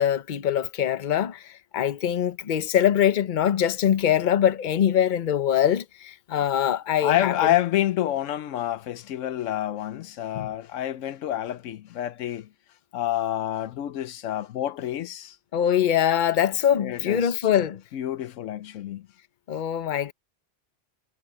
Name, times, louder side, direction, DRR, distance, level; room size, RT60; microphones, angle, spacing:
voice 1, 0.0-7.3 10.4-10.5 15.5-17.8 19.5-20.1, left 9 dB, 45° left, 0.8 m, -23 dB
voice 2, 7.0-12.5 12.9-15.4 16.8-17.5 17.9-19.1, left 12 dB, 90° left, 1.0 m, -28 dB
omnidirectional pair, 1.3 m